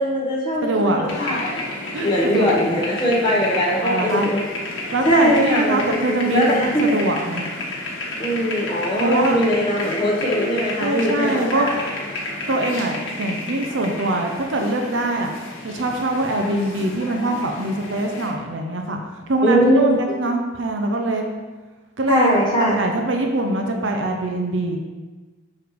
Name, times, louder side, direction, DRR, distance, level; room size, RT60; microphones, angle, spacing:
voice 1, 0.0-1.4 2.0-4.4 5.0-7.0 8.2-11.8 19.4-20.0 22.1-22.8, equal, 20° left, -6 dB, 1.0 m, -20 dB
voice 2, 0.6-1.2 1.9-2.8 3.8-4.3 4.9-7.4 9.0-9.4 10.8-11.7 12.5-15.3 15.6-19.0 19.3-21.2 22.0-24.8, right 2 dB, 75° right, 3 dB, 0.6 m, -23 dB
sound 1, 1.1-18.3, left 2 dB, 80° left, 1.3 m, -31 dB
7.1 x 3.2 x 4.7 m, 1.3 s
head